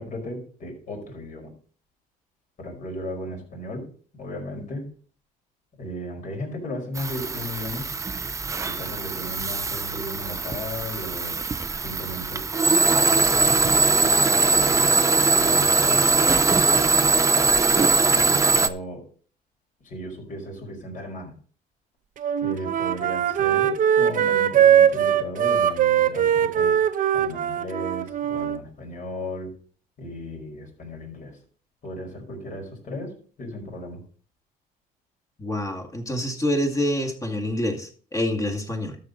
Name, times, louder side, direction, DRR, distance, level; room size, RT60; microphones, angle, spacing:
voice 1, 0.0-1.5 2.6-3.9 4.2-4.9 5.8-7.9 8.6-11.4 11.8-12.4 12.8-13.2 13.6-16.2 18.1-19.0 19.8-21.3 22.4-26.8 27.1-29.5 30.0-31.4 31.8-33.1 33.4-34.0, left 1 dB, 50° left, 2 dB, 5.2 m, -35 dB
sound 1, 7.0-18.7, right 4 dB, 20° right, 0.6 m, -21 dB
Wind instrument woodwind instrument, 22.2-28.6, right 9 dB, 50° right, 0.9 m, -21 dB
voice 2, 35.4-39.0, left 1 dB, 20° left, 4 dB, 2.2 m, -26 dB
13.0 x 7.7 x 4.0 m, 0.44 s
cardioid pair, 110°, 17 cm